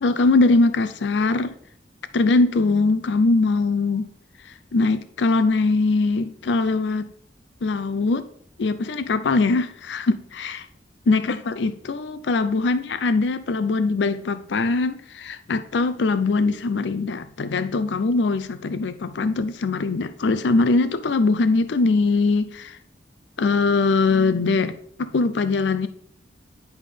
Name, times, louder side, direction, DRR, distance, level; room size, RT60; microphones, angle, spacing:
voice 1, 0.0-1.5 2.1-4.1 4.4-7.1 7.6-8.3 8.6-10.6 11.1-22.8 23.4-25.9, left 3 dB, 75° left, 12 dB, 0.5 m, -21 dB
10.5 x 3.6 x 5.0 m, 0.63 s
head